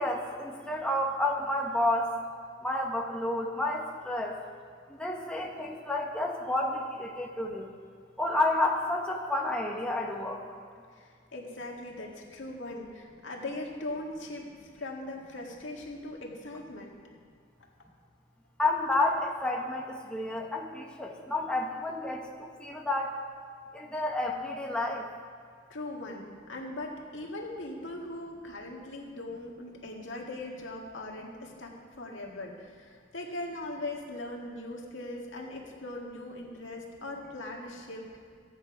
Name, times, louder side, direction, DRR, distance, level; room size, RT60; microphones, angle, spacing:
voice 1, 0.0-2.2 2.6-4.4 4.9-7.7 8.2-10.4 18.6-23.1 23.7-25.1, left 2 dB, 5° left, -1 dB, 0.9 m, -30 dB
voice 2, 10.9-16.9 25.7-38.0, left 2 dB, 75° left, -1 dB, 1.9 m, -40 dB
14.5 x 8.9 x 4.9 m, 2.1 s
head